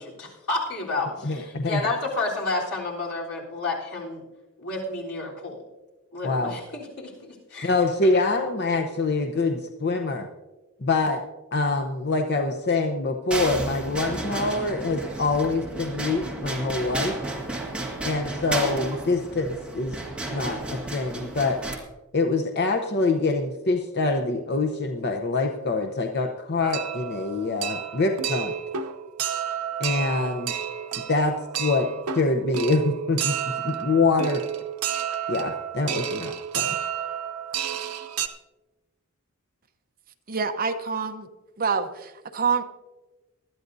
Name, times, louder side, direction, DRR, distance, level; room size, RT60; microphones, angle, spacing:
voice 1, 0.0-4.2 4.6-5.6 6.1-7.7, left 3 dB, 90° left, -4 dB, 3.6 m, -30 dB
voice 2, 1.2-1.8 6.2-6.6 7.6-10.3 10.8-11.2 11.5-17.2 18.0-20.0 20.3-21.6 22.1-28.5 29.8-30.5 31.1-31.9 32.1-33.4 33.6-34.4 35.3-36.8, left 3 dB, 50° left, 5 dB, 0.8 m, -25 dB
sound 1, 13.3-21.8, right 2 dB, 5° right, 1.7 m, -32 dB
sound 2, 26.6-38.3, right 9 dB, 90° right, 0.7 m, -31 dB
voice 3, 40.3-41.3 41.6-42.6, right 5 dB, 40° right, 7 dB, 0.8 m, -26 dB
20.0 x 12.5 x 2.7 m, 1.1 s
head